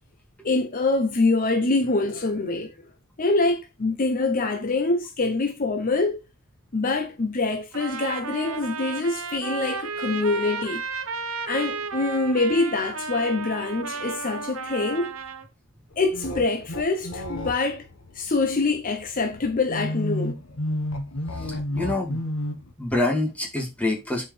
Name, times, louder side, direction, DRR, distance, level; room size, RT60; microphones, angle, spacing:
voice 1, 0.4-2.8 3.2-6.2 6.7-10.8 11.5-15.1 16.0-17.9 18.1-20.4, left 3 dB, 40° left, 0.8 m, -25 dB
Trumpet, 7.7-15.5, right 5 dB, 75° right, 1.0 m, -33 dB
sound 1, 15.9-22.7, left 1 dB, 85° left, 1.3 m, -32 dB
voice 2, 21.5-22.2 22.8-24.3, left 2 dB, 5° left, 2.1 m, -26 dB
9.9 x 4.9 x 3.3 m
head